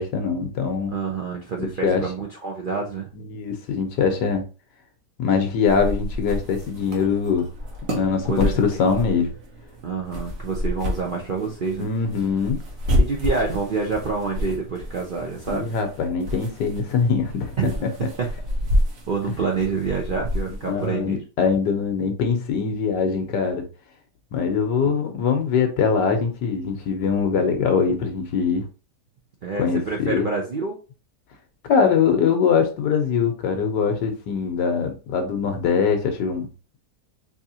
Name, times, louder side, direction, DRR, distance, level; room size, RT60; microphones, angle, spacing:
voice 1, 0.0-0.9 1.6-2.0 3.1-4.4 5.2-7.5 7.9-9.3 11.8-12.6 15.5-17.5 20.6-23.6 24.3-28.6 29.6-30.2 31.6-36.5, left 6 dB, 85° left, 1.5 m, -22 dB
voice 2, 0.9-3.1 8.2-8.6 9.8-11.9 13.0-15.7 17.6-17.9 18.2-18.3 19.1-21.2 24.8-24.9 29.4-30.8, right 4 dB, 75° right, 0.4 m, -27 dB
sound 1, 5.7-20.9, left 1 dB, 55° right, 1.3 m, -29 dB
4.5 x 2.8 x 2.7 m
omnidirectional pair, 1.8 m